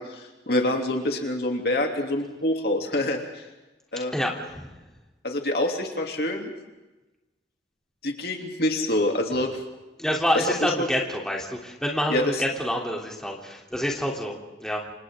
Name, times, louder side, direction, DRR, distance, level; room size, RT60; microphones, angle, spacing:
voice 1, 0.0-3.4 3.9-4.1 5.2-6.5 8.0-9.5 10.3-10.9 12.1-12.2, left 1 dB, 60° left, 2 dB, 3.1 m, -26 dB
voice 2, 4.1-4.7 10.0-14.3 14.6-14.8, equal, 5° left, -2 dB, 3.4 m, -27 dB
30.0 x 27.5 x 3.8 m, 1.1 s
head